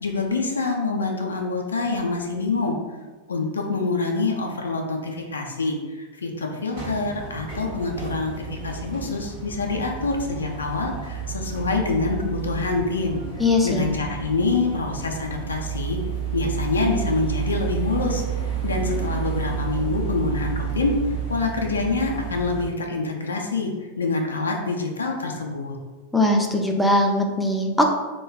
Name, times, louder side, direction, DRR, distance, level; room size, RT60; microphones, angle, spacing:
voice 1, 0.0-2.8 3.3-13.2 13.6-16.0 16.3-21.0 21.3-25.8, left 3 dB, 70° left, 1 dB, 0.4 m, -26 dB
sound 1, 6.7-22.7, right 8 dB, 55° right, 1.0 m, -31 dB
voice 2, 13.4-13.9 26.1-27.8, left 1 dB, 5° left, 1 dB, 0.4 m, -20 dB
2.2 x 2.2 x 3.2 m, 1.3 s
figure-of-eight pair, 90°, 0 cm